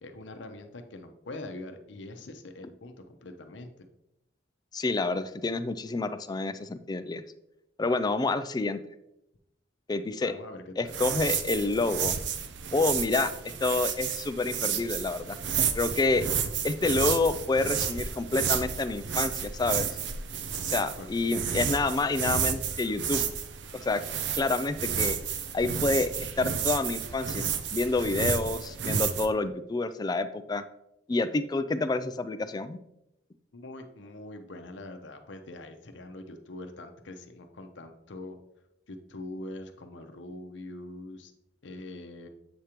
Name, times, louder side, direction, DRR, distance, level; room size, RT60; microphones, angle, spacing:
voice 1, 0.0-3.9 10.2-10.9 21.0-21.1 21.3-21.5 33.5-38.4 38.9-41.3 41.6-42.3, left 2 dB, 85° left, 7 dB, 0.7 m, -43 dB
voice 2, 4.7-7.2 7.8-8.8 9.9-10.3 10.8-12.1 12.7-15.4 15.7-16.2 16.6-19.9 20.7-23.2 23.7-24.0 24.4-25.2 25.5-26.1 26.4-27.4 27.7-30.6 31.1-32.8, left 3 dB, 20° left, 11 dB, 0.3 m, -28 dB
sound 1, 10.9-29.3, right 7 dB, 70° right, 0.5 m, -31 dB
7.9 x 4.9 x 2.9 m, 0.84 s
head